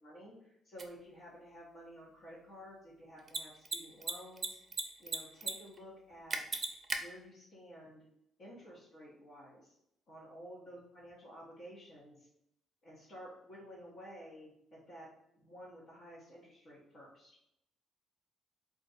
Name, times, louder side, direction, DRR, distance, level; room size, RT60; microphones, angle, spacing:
voice 1, 0.0-4.6 5.0-6.4 6.9-8.1 8.4-9.7 10.1-12.3 12.8-15.1 15.3-17.4, equal, 55° left, -8 dB, 1.2 m, -52 dB
Mechanisms, 0.8-0.9 3.2-3.4 3.6-3.8 4.0-4.8 5.1-5.5 5.8-5.9 6.3-7.0, right 3 dB, 35° right, 0.5 m, -34 dB
2.5 x 2.5 x 4.1 m, 0.76 s
cardioid pair, 90°, 0 cm